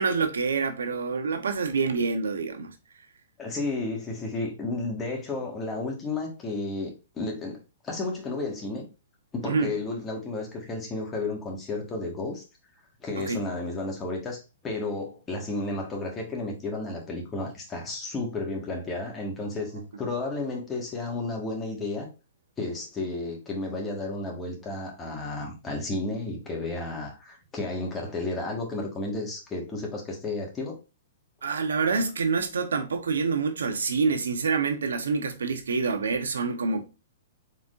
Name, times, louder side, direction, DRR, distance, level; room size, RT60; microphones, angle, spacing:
voice 1, 0.0-2.7 9.4-9.7 13.2-13.4 31.4-36.8, right 4 dB, 85° right, 0.9 m, -27 dB
voice 2, 3.4-8.9 9.3-12.4 13.0-22.1 22.6-30.8, left 2 dB, 20° left, 1.6 m, -32 dB
4.3 x 3.6 x 2.5 m
hypercardioid pair, 135°, 0 cm